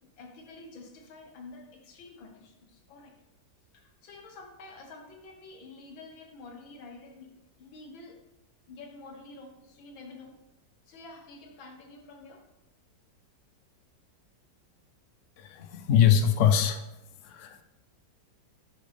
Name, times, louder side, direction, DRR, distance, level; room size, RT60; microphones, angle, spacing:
voice 1, 0.0-3.2 3.7-8.2 8.7-10.4 10.9-12.5, left 3 dB, 90° left, 4 dB, 2.0 m, -48 dB
voice 2, 15.4-16.8 17.2-17.6, left 8 dB, 65° left, 8 dB, 0.7 m, -23 dB
10.5 x 6.7 x 3.5 m, 0.98 s
omnidirectional pair, 2.1 m